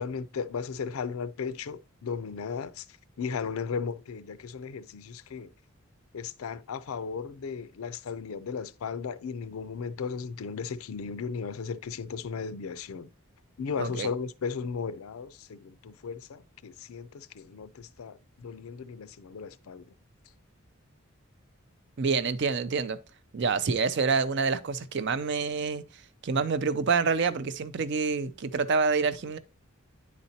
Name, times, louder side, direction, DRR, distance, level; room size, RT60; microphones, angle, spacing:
voice 1, 0.0-2.9 3.2-5.5 6.1-13.1 13.6-19.9, left 5 dB, 80° left, 0.4 m, -36 dB
voice 2, 13.8-14.1 22.0-23.0 23.3-25.8 26.2-29.4, right 5 dB, 55° right, 0.5 m, -27 dB
9.5 x 4.1 x 2.8 m
head